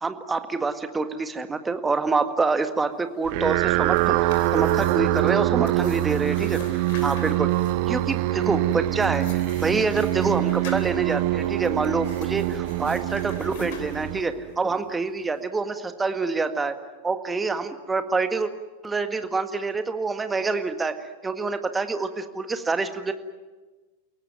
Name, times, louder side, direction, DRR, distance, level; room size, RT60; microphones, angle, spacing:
voice 1, 0.0-6.6 7.0-7.5 7.9-16.7 17.0-18.5 18.8-20.9 21.2-23.1, right 4 dB, 15° right, 9 dB, 1.8 m, -26 dB
sound 1, 3.2-14.7, right 17 dB, 45° right, 0.8 m, -24 dB
sound 2, 3.6-14.5, left 7 dB, 50° left, 3.7 m, -47 dB
29.5 x 17.5 x 9.3 m, 1.3 s
figure-of-eight pair, 90°, 0 cm